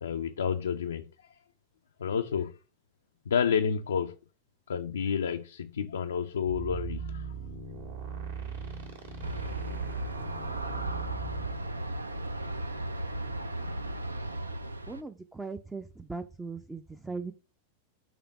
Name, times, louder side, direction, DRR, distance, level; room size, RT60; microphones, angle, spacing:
voice 1, 0.0-1.4 2.0-2.6 3.3-4.2 4.7-7.3, left 7 dB, 70° left, 0.3 m, -30 dB
sound 1, 6.5-11.6, right 6 dB, 65° right, 1.7 m, -38 dB
Aircraft, 9.2-15.0, right 1 dB, 80° right, 0.4 m, -36 dB
voice 2, 14.9-17.3, right 4 dB, 10° right, 0.4 m, -39 dB
5.8 x 3.3 x 5.5 m
figure-of-eight pair, 90°, 0 cm